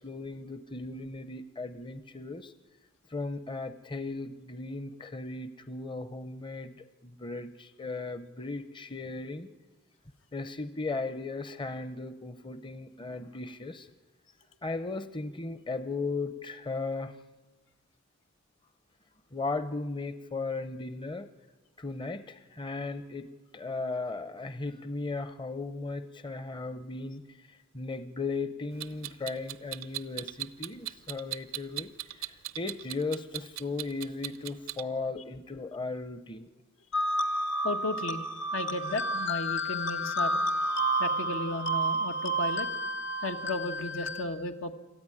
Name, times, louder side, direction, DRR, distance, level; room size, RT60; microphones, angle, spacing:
voice 1, 0.0-2.5 3.1-6.7 7.0-9.5 10.3-13.9 14.6-17.1 19.3-21.3 21.8-27.2 27.7-31.9 32.6-36.5, left 3 dB, 25° left, 11 dB, 0.7 m, -36 dB
Clock, 28.8-34.8, right 16 dB, 80° right, 0.6 m, -38 dB
sound 1, 36.9-44.2, right 1 dB, 65° left, 1.4 m, -30 dB
voice 2, 37.6-38.2 38.5-40.4 41.0-42.7 43.2-44.7, left 2 dB, 85° left, 6 dB, 1.5 m, -34 dB
26.0 x 14.0 x 9.8 m, 1.3 s
head